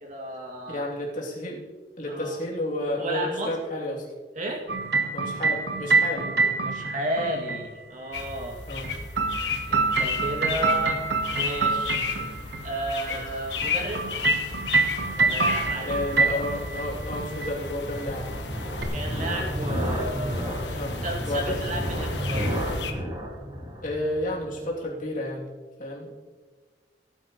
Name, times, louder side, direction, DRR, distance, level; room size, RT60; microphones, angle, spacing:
voice 1, 0.0-0.8 2.1-2.3 3.0-3.6 4.4-4.7 6.6-8.6 9.7-11.0 11.3-12.0 12.6-14.1 15.2-16.0 18.9-22.5, right 1 dB, 45° right, 0 dB, 2.4 m, -33 dB
voice 2, 0.7-1.6 2.0-4.1 5.1-6.3 8.7-8.9 12.0-12.3 13.1-13.2 15.8-18.3 20.8-21.0 21.3-21.6 23.8-25.5 25.8-26.2, left 1 dB, 45° left, -3 dB, 2.9 m, -31 dB
sound 1, 4.7-7.6 8.8-12.6 13.6-16.9 17.1-17.5 18.8-18.9, right 4 dB, 65° right, 1.1 m, -25 dB
sound 2, 8.1-22.9, left 5 dB, 80° left, 1.3 m, -34 dB
sound 3, 15.7-24.7, equal, 25° right, 2.3 m, -33 dB
17.5 x 9.8 x 3.1 m, 1.4 s
head